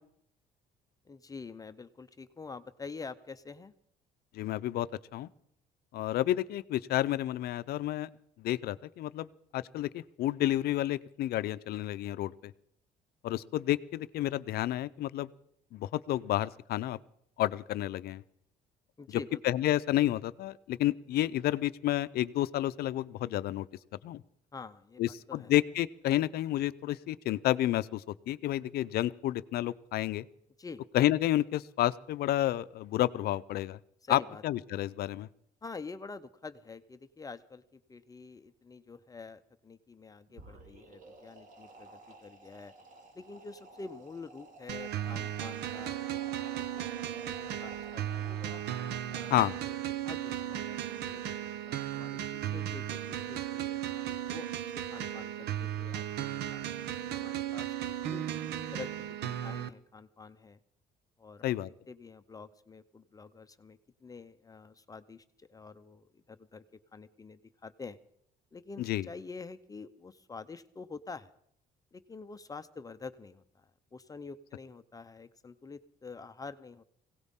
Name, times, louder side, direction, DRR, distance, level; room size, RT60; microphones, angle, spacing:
voice 1, 1.0-3.7 19.0-19.4 24.5-25.5 30.6-30.8 34.0-34.4 35.6-42.7 43.1-48.6 49.1-49.4 49.7-51.2 51.7-54.5 54.9-57.7 58.0-58.2 58.7-60.6 61.2-66.6 66.9-68.0 68.5-71.3 71.9-76.8, left 4 dB, 20° left, 11 dB, 0.6 m, -47 dB
voice 2, 4.3-5.3 5.9-8.1 8.4-12.5 13.2-15.3 15.7-17.0 17.4-18.2 19.4-23.7 24.0-24.2 25.0-30.3 30.9-33.8 34.1-35.3 49.3-49.6 61.4-61.7 68.8-69.1, left 14 dB, 65° left, 16 dB, 0.6 m, -30 dB
sound 1, 40.3-50.0, right 2 dB, 50° right, 2.2 m, -54 dB
sound 2, 44.7-59.7, right 11 dB, 75° right, 0.8 m, -36 dB
22.0 x 17.5 x 3.7 m, 0.69 s
cardioid pair, 110°, 17 cm